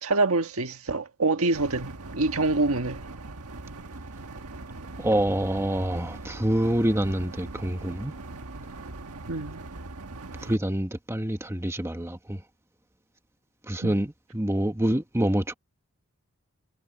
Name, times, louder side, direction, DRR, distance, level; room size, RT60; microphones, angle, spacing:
voice 1, 0.0-3.0 9.3-9.6 13.8-14.0, right 3 dB, 70° right, 1.6 m, -26 dB
sound 1, 1.5-10.6, right 2 dB, 90° right, 1.6 m, -41 dB
voice 2, 5.0-8.1 10.4-12.4 13.7-15.5, right 1 dB, 10° right, 1.3 m, -26 dB
head